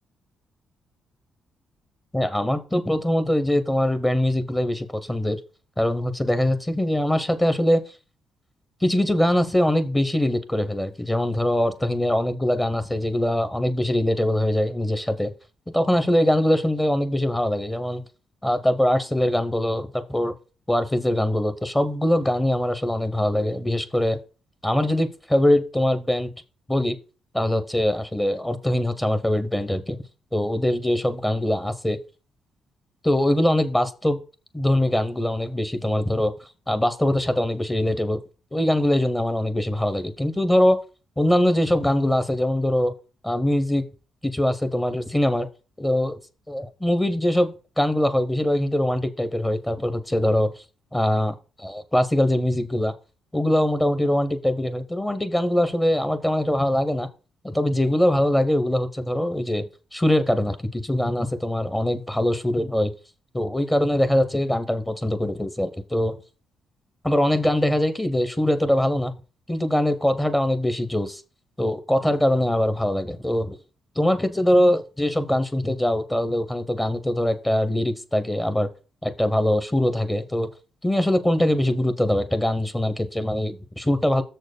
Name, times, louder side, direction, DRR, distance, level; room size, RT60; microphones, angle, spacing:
voice 1, 2.1-5.4 5.8-7.8 8.8-15.3 15.7-18.0 18.4-20.3 20.7-24.2 24.6-26.3 26.7-27.0 27.3-30.0 30.3-32.0 33.0-34.2 34.5-36.3 36.7-38.2 38.5-40.8 41.2-42.9 43.2-43.8 44.2-45.5 45.8-46.2 46.5-50.5 50.9-52.9 53.3-57.1 57.4-62.9 63.3-66.1 67.0-69.1 69.5-71.2 71.6-73.6 74.0-78.7 79.0-80.5 80.8-84.2, left 1 dB, 10° left, 0.7 m, -22 dB
6.9 x 4.4 x 6.7 m
cardioid pair, 155°, 0 cm